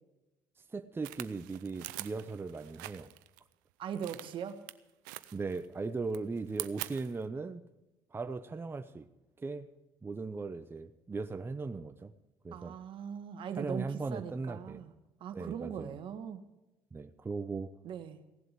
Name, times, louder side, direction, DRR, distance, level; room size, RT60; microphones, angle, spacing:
voice 1, 0.7-3.1 5.3-7.6 8.1-9.1 9.4-9.7 10.0-12.1 12.4-12.8 13.6-14.8 15.3-15.9 16.9-17.7, right 4 dB, 25° right, 8 dB, 0.8 m, -38 dB
sound 1, 1.0-3.4 3.9-4.7 5.1-5.7 6.0-7.2, right 19 dB, 90° right, 0.5 m, -44 dB
voice 2, 3.8-4.6 12.5-14.9 15.2-16.4 17.8-18.2, right 8 dB, 60° right, 9 dB, 1.5 m, -40 dB
17.0 x 7.8 x 8.0 m, 1.0 s
supercardioid pair, 70°, 10 cm